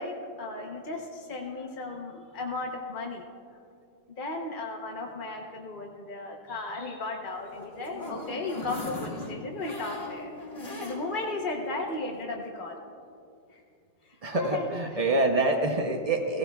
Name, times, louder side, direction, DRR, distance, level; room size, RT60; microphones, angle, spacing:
voice 1, 0.0-3.2 3.5-3.6 4.2-10.3 10.8-12.8 13.5-13.6 14.0-14.8, left 2 dB, 40° left, 0 dB, 0.8 m, -35 dB
sound 1, 7.3-11.3 11.7-11.8 12.1-12.2, left 2 dB, 20° left, 2.4 m, -39 dB
voice 2, 14.2-16.4, right 2 dB, 75° right, 3 dB, 0.3 m, -26 dB
17.0 x 16.5 x 2.3 m, 2.4 s
omnidirectional pair, 1.8 m